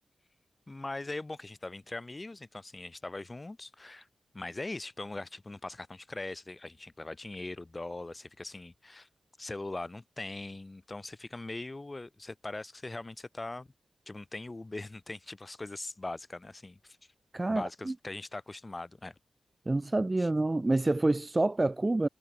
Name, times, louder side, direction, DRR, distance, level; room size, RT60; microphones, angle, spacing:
voice 1, 0.7-4.1 4.3-9.1 9.4-13.7 14.1-17.0 17.5-19.1 20.2-20.3, left 2 dB, 20° left, 6.9 m, -41 dB
voice 2, 17.3-17.9 19.6-22.1, right 2 dB, 20° right, 1.5 m, -27 dB
wide cardioid pair, 140°, 0 cm